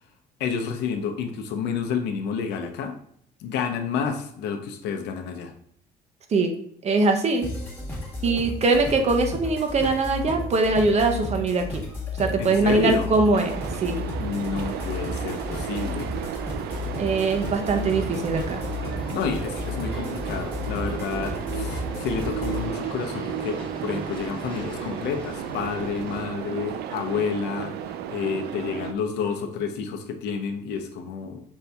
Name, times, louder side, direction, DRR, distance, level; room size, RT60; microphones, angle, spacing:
voice 1, 0.4-2.9 3.4-5.5 12.4-13.1 14.2-16.1 19.1-27.7 28.1-31.4, left 6 dB, 85° left, 5 dB, 0.7 m, -29 dB
voice 2, 6.8-7.5 8.2-11.8 12.2-14.0 17.0-18.6, right 3 dB, 40° right, 5 dB, 0.8 m, -22 dB
sound 1, 7.4-22.7, left 2 dB, 10° left, 1.3 m, -33 dB
sound 2, 13.3-28.9, right 9 dB, 75° right, 0.4 m, -34 dB
sound 3, 16.7-26.3, left 1 dB, 30° left, 1.1 m, -40 dB
5.3 x 2.7 x 3.4 m, 0.65 s
cardioid pair, 110°, 17 cm